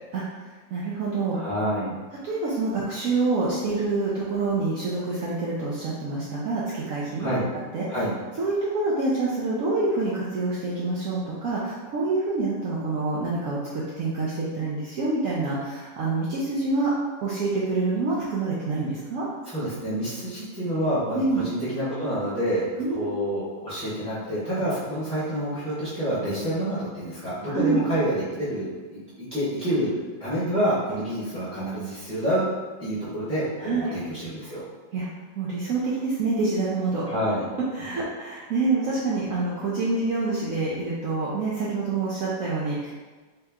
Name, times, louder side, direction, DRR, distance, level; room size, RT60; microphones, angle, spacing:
voice 1, 0.7-1.4 2.2-7.3 7.7-7.9 8.4-16.9 17.2-19.3 21.1-21.4 22.8-23.1 27.5-27.8 33.6-33.9 34.9-35.1 35.3-37.1 37.7-42.9, right 3 dB, 85° right, -6 dB, 0.7 m, -26 dB
voice 2, 1.3-1.9 7.2-7.5 7.9-8.1 19.5-22.6 22.9-29.9 30.2-32.4 32.8-34.6 37.1-37.4, equal, 10° right, -13 dB, 0.8 m, -28 dB
3.2 x 2.9 x 3.5 m, 1.3 s
omnidirectional pair, 2.1 m